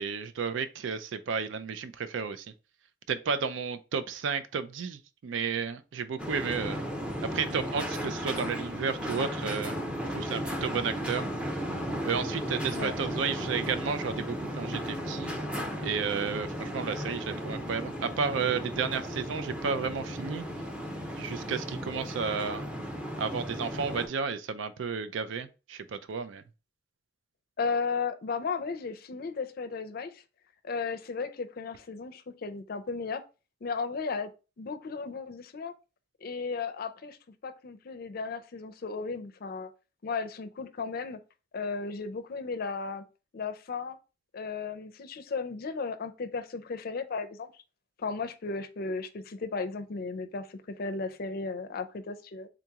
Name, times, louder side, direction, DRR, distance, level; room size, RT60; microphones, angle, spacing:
voice 1, 0.0-2.5 3.1-6.9 7.2-9.8 10.1-11.3 12.0-15.4 15.8-20.5 21.2-22.7 23.2-26.4, right 5 dB, 90° right, 0.4 m, -32 dB
sound 1, 6.2-24.1, equal, 5° right, 0.6 m, -35 dB
voice 2, 27.6-30.2 30.6-33.2 33.6-34.3 34.6-35.7 36.2-37.2 37.4-39.7 40.0-41.2 41.5-43.0 43.3-44.0 44.3-47.5 48.0-52.5, left 4 dB, 55° left, 0.5 m, -35 dB
3.8 x 2.9 x 3.5 m
head